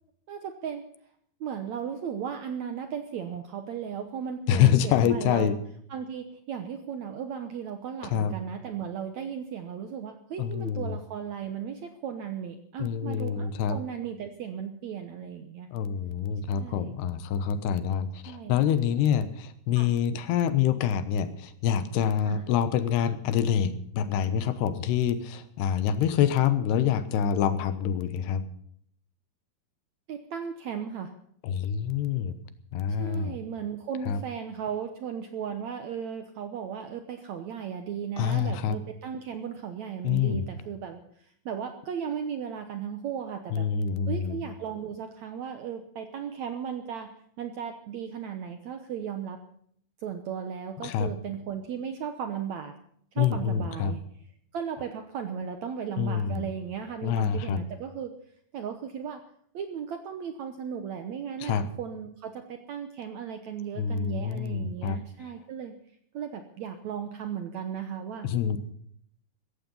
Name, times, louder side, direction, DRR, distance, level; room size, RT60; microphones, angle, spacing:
voice 1, 0.3-0.8 1.4-5.5 5.9-15.7 16.5-17.0 18.2-18.8 19.8-19.9 22.3-22.4 30.1-31.1 33.0-43.7 44.1-47.1 47.4-49.4 50.0-52.7 53.1-54.0 54.5-58.1 58.5-59.2 59.5-65.8 66.1-68.3, right 8 dB, 75° right, 7 dB, 1.7 m, -36 dB
voice 2, 4.5-5.5 8.1-8.3 10.4-10.9 12.8-13.8 15.7-28.4 31.4-32.4 32.7-33.4 34.1-34.2 38.2-38.8 40.0-40.4 43.5-44.4 50.8-51.1 53.2-53.9 56.0-56.4 57.0-57.6 61.4-61.6 63.8-65.0 68.2-68.6, left 9 dB, 90° left, 12 dB, 3.3 m, -26 dB
16.0 x 14.5 x 5.5 m, 0.65 s
omnidirectional pair, 4.6 m